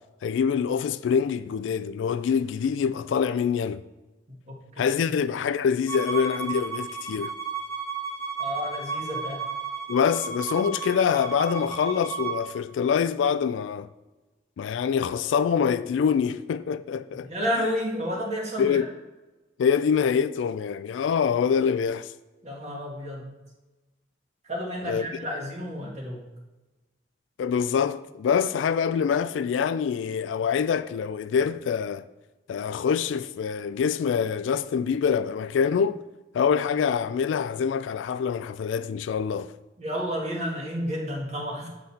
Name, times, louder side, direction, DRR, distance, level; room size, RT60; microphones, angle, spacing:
voice 1, 0.2-3.8 4.8-7.3 9.9-13.9 14.6-17.3 18.6-18.9 19.6-22.1 24.9-25.1 27.4-32.1 32.5-36.0 36.3-39.5, left 7 dB, 75° left, 0.3 m, -25 dB
voice 2, 4.5-5.1 8.4-9.5 17.2-18.8 22.4-23.3 24.4-26.3 39.8-41.7, equal, 40° right, 1.6 m, -31 dB
Bowed string instrument, 5.9-12.4, right 5 dB, 15° left, 1.0 m, -33 dB
8.0 x 4.0 x 4.2 m
head